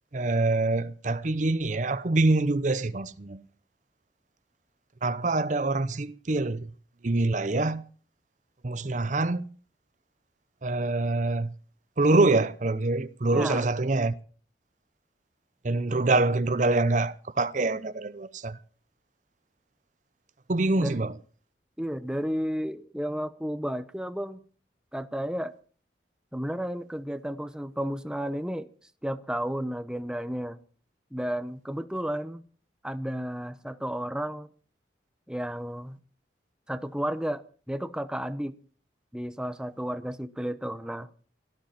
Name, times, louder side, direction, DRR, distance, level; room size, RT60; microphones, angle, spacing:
voice 1, 0.1-3.4 5.0-6.7 7.0-7.8 8.6-9.4 10.6-11.5 12.0-14.1 15.6-18.6 20.5-21.1, right 2 dB, 45° right, 0.7 m, -25 dB
voice 2, 13.3-13.7 20.8-21.0 21.8-24.4 24.9-25.5 26.3-28.7 29.0-30.6 31.1-32.4 32.8-34.5 35.3-36.0 36.7-38.6 39.1-41.1, equal, 5° right, 0.8 m, -32 dB
17.5 x 13.5 x 5.8 m
head